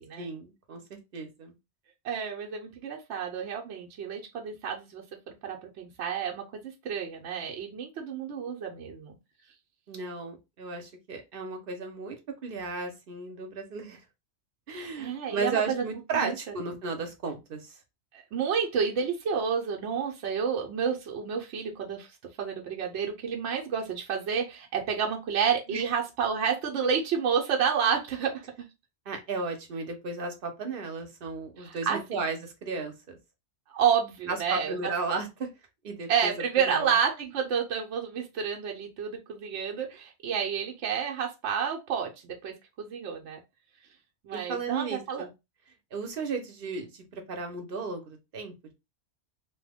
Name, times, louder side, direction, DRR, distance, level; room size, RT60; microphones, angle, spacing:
voice 1, 0.2-1.5 9.9-12.2 12.4-14.0 14.7-17.8 25.7-25.8 29.1-33.2 34.3-35.5 35.8-36.9 44.3-45.3 45.9-48.5, right 4 dB, 55° right, 5 dB, 0.9 m, -34 dB
voice 2, 2.0-9.2 14.7-15.6 16.1-16.3 18.1-22.1 22.4-28.4 31.6-32.2 33.7-34.9 36.1-43.4 44.2-45.2, right 7 dB, 80° right, 1 dB, 1.0 m, -30 dB
2.9 x 2.2 x 3.3 m, 0.24 s
omnidirectional pair, 1.2 m